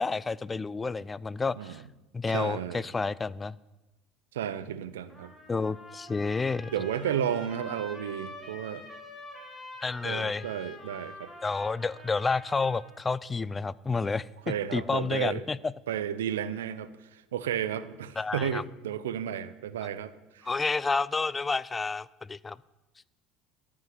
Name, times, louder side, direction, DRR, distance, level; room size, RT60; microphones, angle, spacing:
voice 1, 0.0-1.8 2.1-3.6 5.5-6.7 9.8-10.4 11.4-15.7 18.2-18.6 20.4-22.6, left 4 dB, 20° left, 21 dB, 0.4 m, -30 dB
voice 2, 2.3-2.8 4.3-5.3 6.7-8.8 10.0-11.3 14.5-15.4 15.9-20.1, right 9 dB, 90° right, 15 dB, 0.7 m, -32 dB
Trumpet, 5.1-13.0, left 2 dB, 5° left, 4.1 m, -46 dB
13.5 x 6.3 x 9.5 m, 1.0 s
hypercardioid pair, 80°, 0 cm